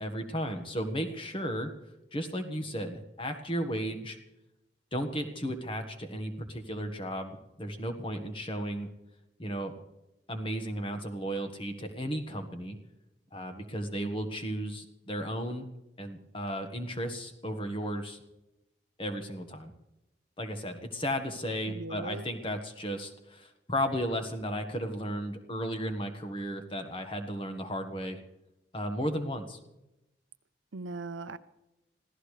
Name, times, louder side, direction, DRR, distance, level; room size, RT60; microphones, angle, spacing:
voice 1, 0.0-1.7 2.1-4.2 4.9-8.9 9.4-9.7 10.3-12.8 13.3-15.7 16.0-18.2 19.0-19.7 20.4-28.2 28.7-29.6, equal, 25° left, 5 dB, 1.4 m, -34 dB
voice 2, 21.7-22.2 30.7-31.4, right 3 dB, 80° right, 13 dB, 0.7 m, -39 dB
25.0 x 16.0 x 3.3 m, 0.94 s
head